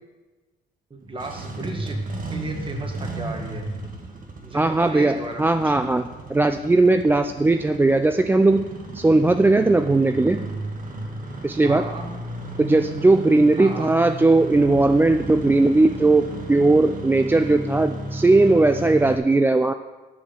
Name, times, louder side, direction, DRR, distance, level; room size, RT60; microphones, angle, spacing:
voice 1, 0.9-2.0 2.3-3.7 4.4-5.7 11.6-12.1 13.6-13.9, right 2 dB, 25° right, 2 dB, 1.9 m, -35 dB
Engine starting, 1.0-19.2, right 2 dB, 45° right, 1.5 m, -34 dB
voice 2, 4.5-8.7 8.9-10.5 11.4-11.9 12.6-19.7, right 2 dB, 10° right, 9 dB, 0.3 m, -18 dB
10.5 x 4.9 x 7.5 m, 1.2 s
cardioid pair, 95°, 20 cm